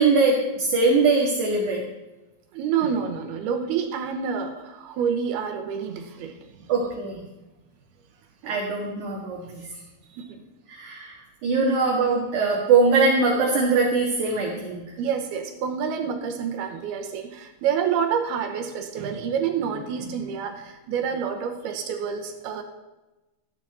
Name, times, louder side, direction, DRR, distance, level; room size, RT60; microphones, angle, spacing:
voice 1, 0.0-1.8 6.7-7.2 8.4-9.6 10.7-11.1 11.4-14.8, right 4 dB, 55° right, -3 dB, 2.8 m, -21 dB
voice 2, 2.5-6.4 8.4-8.6 10.1-10.4 15.0-22.6, right 7 dB, 75° right, 5 dB, 2.8 m, -28 dB
14.5 x 11.0 x 4.2 m, 1.0 s
omnidirectional pair, 4.8 m